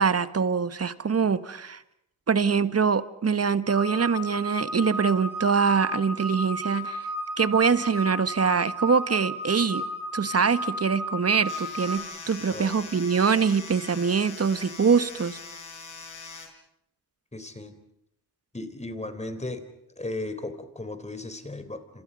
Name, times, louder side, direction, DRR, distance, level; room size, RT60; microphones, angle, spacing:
voice 1, 0.0-1.8 2.3-7.1 7.4-9.8 10.1-15.4, right 6 dB, 35° right, 13 dB, 1.5 m, -24 dB
sound 1, 3.7-12.0, equal, 5° right, 6.7 m, -33 dB
sound 2, 11.5-16.5, left 4 dB, 50° left, 5.0 m, -42 dB
voice 2, 12.5-12.8 17.3-17.8 18.5-19.7 20.0-22.0, left 2 dB, 15° left, 10 dB, 3.7 m, -36 dB
28.0 x 27.0 x 5.4 m, 0.78 s
cardioid pair, 60°, 41 cm